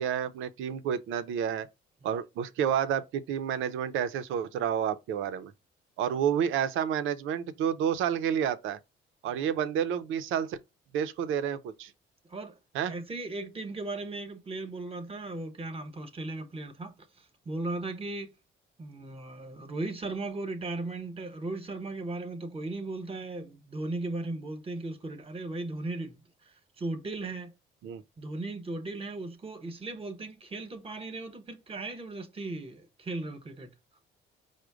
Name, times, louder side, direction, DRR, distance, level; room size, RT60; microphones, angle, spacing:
voice 1, 0.0-1.7 2.0-5.5 6.0-8.8 9.2-10.6 10.9-11.9 12.7-12.9 27.8-28.0, right 8 dB, 85° right, 0.5 m, -30 dB
voice 2, 12.8-18.3 18.8-26.2 26.8-27.5 28.2-33.7, right 2 dB, 30° right, 1.0 m, -37 dB
5.0 x 2.1 x 4.6 m
cardioid pair, 90°, 20 cm